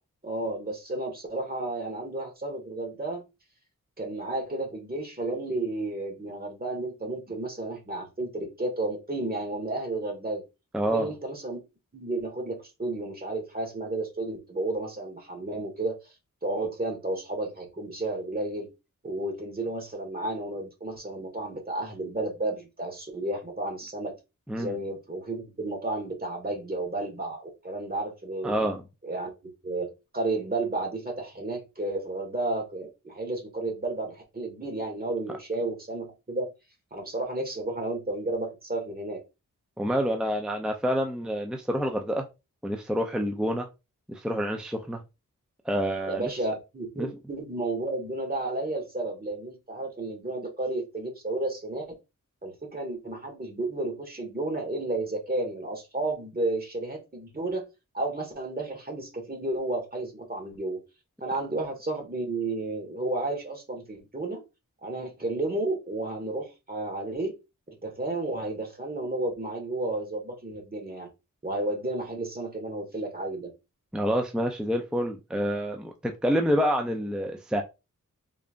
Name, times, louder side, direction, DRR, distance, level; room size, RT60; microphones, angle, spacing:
voice 1, 0.2-3.2 4.0-10.4 10.9-11.6 11.9-16.1 16.4-18.7 19.0-24.1 24.6-28.5 29.0-29.3 29.6-36.5 36.9-39.2 46.1-51.9 52.4-57.6 57.9-60.8 61.2-64.4 64.8-67.3 67.7-71.1 71.4-73.5, right 2 dB, 30° right, 1.5 m, -32 dB
voice 2, 10.7-11.1 24.5-24.7 28.4-28.8 39.8-42.3 42.6-43.7 44.1-45.0 45.7-46.3 47.0-47.1 73.9-77.6, equal, ahead, 0.5 m, -27 dB
3.8 x 3.3 x 2.5 m
wide cardioid pair, 80°, 32 cm